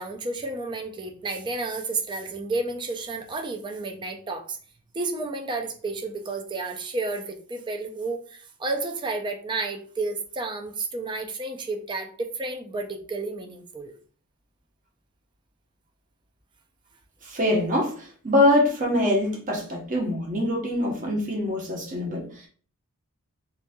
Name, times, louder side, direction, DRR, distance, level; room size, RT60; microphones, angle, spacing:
voice 1, 0.0-4.6 4.9-13.9, right 3 dB, 20° right, 4 dB, 0.4 m, -31 dB
voice 2, 17.2-22.5, left 1 dB, 35° right, -1 dB, 0.9 m, -24 dB
3.9 x 2.7 x 2.3 m, 0.43 s
head